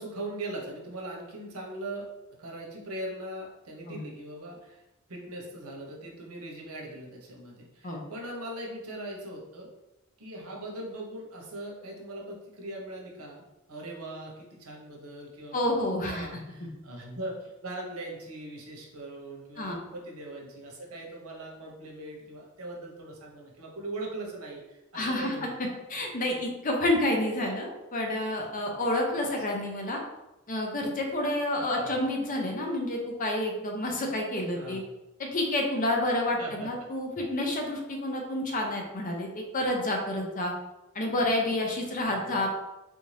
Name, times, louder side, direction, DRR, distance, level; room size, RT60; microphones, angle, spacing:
voice 1, 0.0-2.1 2.4-9.7 10.2-13.4 13.7-25.5 29.2-29.3 31.7-32.0 34.5-34.9 36.4-36.7 42.0-42.3, right 1 dB, 85° right, -1 dB, 0.9 m, -40 dB
voice 2, 15.5-16.3 19.6-19.8 24.9-25.3 25.9-30.0 30.5-34.8 35.2-39.3 39.5-40.5 40.9-42.5, left 1 dB, 40° left, 1 dB, 0.6 m, -29 dB
3.5 x 2.6 x 3.2 m, 1.0 s
head